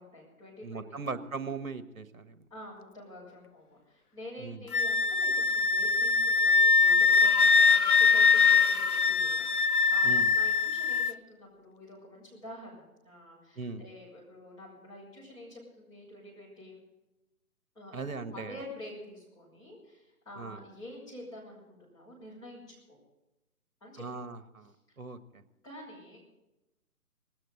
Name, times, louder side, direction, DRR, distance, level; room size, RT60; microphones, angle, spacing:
voice 1, 0.0-1.0 2.5-16.8 17.7-23.0 23.8-24.2 25.6-26.2, left 1 dB, 10° left, -7 dB, 5.7 m, -48 dB
voice 2, 0.6-2.5 4.4-4.7 10.0-10.3 13.6-13.8 17.9-18.6 20.4-20.6 24.0-25.4, right 4 dB, 65° right, 11 dB, 1.6 m, -39 dB
Wind instrument woodwind instrument, 4.7-11.1, left 5 dB, 80° left, 0.8 m, -23 dB
19.5 x 17.5 x 3.9 m, 0.97 s
figure-of-eight pair, 145°, 45 cm